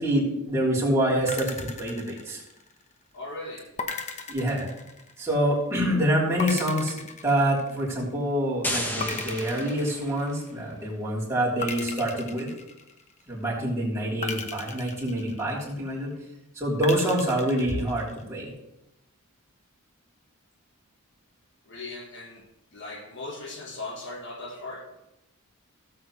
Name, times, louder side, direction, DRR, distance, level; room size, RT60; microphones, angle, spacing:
voice 1, 0.0-2.4 4.3-4.7 5.2-12.5 13.3-16.1 16.5-18.5, equal, 15° right, 3.4 m, -26 dB
sound 1, 1.3-2.9 3.8-5.4 6.4-8.1 9.0-10.6 11.6-13.3 14.2-15.9 16.8-18.2, left 4 dB, 30° left, 0.9 m, -37 dB
voice 2, 3.1-3.7 21.7-24.9, left 2 dB, 55° left, 1.4 m, -38 dB
sound 2, 8.6-10.5, left 1 dB, 10° left, 1.0 m, -33 dB
16.5 x 7.8 x 3.2 m
head